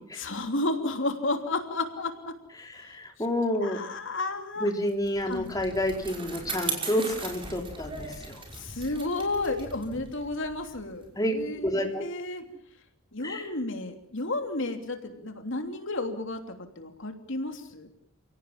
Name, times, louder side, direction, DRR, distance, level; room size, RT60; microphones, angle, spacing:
voice 1, 0.1-2.3 3.5-4.7 5.2-5.5 8.5-12.4 13.1-16.4 16.8-17.9, left 2 dB, 60° left, 5 dB, 3.1 m, -32 dB
voice 2, 2.6-3.8 4.6-8.4 11.2-11.3 11.6-12.0 13.2-13.5, left 1 dB, 20° left, 2 dB, 3.6 m, -29 dB
Bicycle, 4.9-11.6, right 4 dB, 25° right, 5.6 m, -39 dB
29.5 x 17.5 x 7.3 m, 0.66 s
head